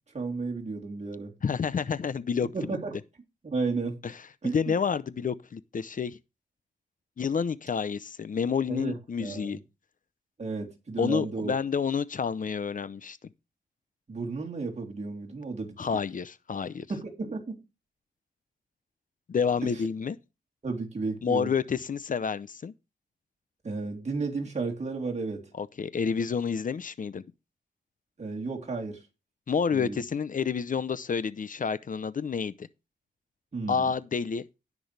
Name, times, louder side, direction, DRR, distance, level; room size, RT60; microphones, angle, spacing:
voice 1, 0.1-1.3 2.5-2.9 3.4-4.0 4.4-4.7 8.7-9.6 10.4-11.5 14.1-15.8 16.9-17.6 19.7-19.8 20.6-21.5 23.6-25.4 28.2-29.1 29.7-30.0 33.5-33.9, right 3 dB, 45° right, 3.5 m, -33 dB
voice 2, 1.4-2.5 4.0-4.1 4.5-6.2 7.2-9.6 11.0-13.2 15.8-16.9 19.3-20.2 21.2-22.7 25.6-27.2 29.5-32.7 33.7-34.4, left 6 dB, 55° left, 0.7 m, -29 dB
17.5 x 6.2 x 3.3 m
wide cardioid pair, 90°, 16 cm